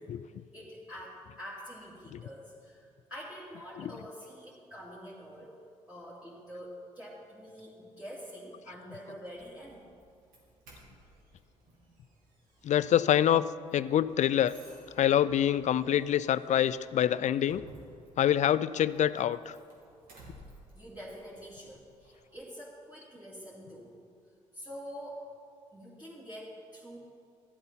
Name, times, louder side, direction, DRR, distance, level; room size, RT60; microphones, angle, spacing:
voice 1, 0.5-5.6 5.9-9.9 20.7-23.9 24.5-25.3 25.7-27.0, equal, 10° right, -9 dB, 2.9 m, -46 dB
Doorbell, 9.2-22.4, right 1 dB, 75° right, 2.7 m, -58 dB
voice 2, 12.6-13.4 13.7-14.6 15.0-17.6 18.2-19.6, left 10 dB, 55° left, 16 dB, 0.4 m, -26 dB
12.5 x 7.9 x 5.7 m, 2.3 s
supercardioid pair, 60°, 15 cm